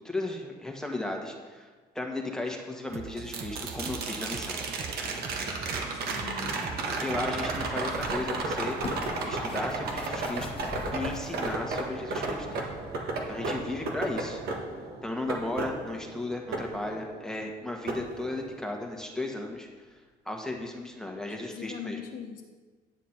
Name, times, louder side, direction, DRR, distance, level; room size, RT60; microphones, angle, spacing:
voice 1, 0.0-1.7 1.9-4.6 6.9-8.8 9.3-10.6 10.9-12.5 13.3-14.4 15.0-19.7 20.2-22.0, left 2 dB, 5° left, 1 dB, 1.5 m, -35 dB
sound 1, 2.9-8.1, right 7 dB, 40° right, 0.5 m, -42 dB
sound 2, 3.3-17.4 17.9-18.9 21.1-21.2, right 3 dB, 65° right, 1.5 m, -34 dB
voice 2, 6.0-6.8 21.3-22.4, left 6 dB, 55° left, 1 dB, 1.0 m, -41 dB
sound 3, 7.9-11.9 12.5-12.6, left 4 dB, 35° left, 0.9 m, -43 dB
9.7 x 7.2 x 4.5 m, 1.4 s
cardioid pair, 110°, 17 cm